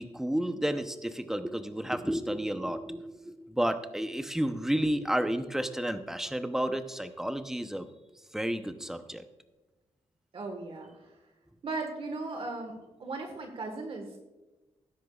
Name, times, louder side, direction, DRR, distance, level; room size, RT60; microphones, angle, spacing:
voice 1, 0.0-7.9 8.3-9.2, right 1 dB, 5° right, 8 dB, 0.7 m, -31 dB
voice 2, 10.3-11.2 11.6-12.7 13.0-14.2, right 3 dB, 55° right, 4 dB, 1.5 m, -37 dB
19.5 x 10.5 x 2.4 m, 1.1 s
wide cardioid pair, 125°, 12 cm